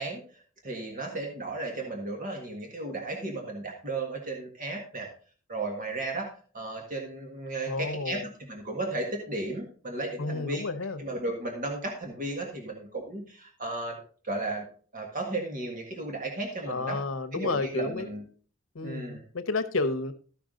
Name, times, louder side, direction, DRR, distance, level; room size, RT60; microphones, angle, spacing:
voice 1, 0.0-5.1 5.5-8.2 8.5-10.6 11.0-14.0 14.2-14.7 14.9-17.0 17.3-18.2 18.8-19.2, right 2 dB, 45° right, 1 dB, 1.7 m, -34 dB
voice 2, 7.7-8.3 10.2-11.0 16.7-18.1 18.7-20.1, left 3 dB, 80° left, 11 dB, 0.9 m, -31 dB
14.0 x 5.9 x 3.8 m, 0.42 s
head